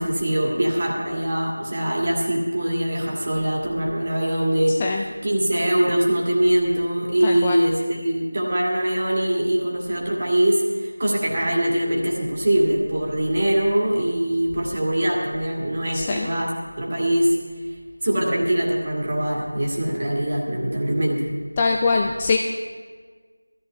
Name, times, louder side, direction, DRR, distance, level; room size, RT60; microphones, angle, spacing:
voice 1, 0.0-4.8 5.2-16.5 16.8-17.3 18.0-21.3, right 1 dB, 25° right, -3 dB, 2.1 m, -22 dB
voice 2, 4.7-5.1 7.2-7.7 15.9-16.3 21.6-22.4, left 4 dB, 10° left, 2 dB, 0.3 m, -23 dB
18.5 x 14.0 x 3.4 m, 1.5 s
figure-of-eight pair, 170°, 0 cm